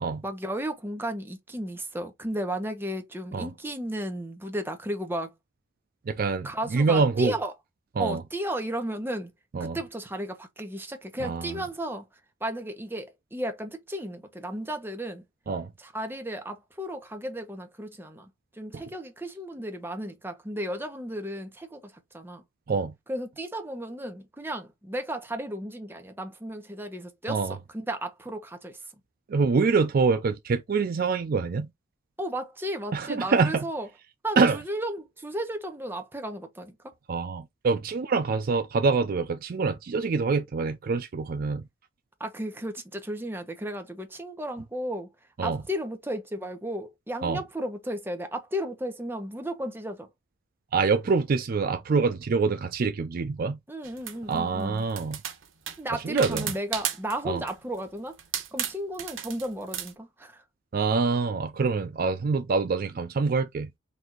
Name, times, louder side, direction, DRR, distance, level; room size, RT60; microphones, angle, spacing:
voice 1, 0.2-5.3 6.4-7.5 8.0-9.3 9.6-12.0 12.4-15.2 15.8-18.3 18.6-22.4 23.1-28.8 32.2-33.9 34.2-36.7 42.2-45.1 45.4-50.1 53.7-54.8 55.8-58.2 58.5-60.4, right 1 dB, 10° right, 1.0 m, -34 dB
voice 2, 6.1-7.3 8.0-8.2 9.5-9.8 11.2-11.6 15.5-15.7 18.7-18.8 22.7-22.9 27.3-27.6 29.3-31.7 32.9-33.7 34.4-34.6 37.1-41.7 45.4-45.6 47.2-47.4 50.7-53.6 54.3-55.2 55.9-56.5 57.2-57.4 60.7-63.7, right 4 dB, 50° right, 0.4 m, -25 dB
sound 1, 53.8-54.4 54.9-57.2 57.5-57.8 58.2-59.9, right 10 dB, 90° right, 0.9 m, -34 dB
4.1 x 2.6 x 4.4 m
head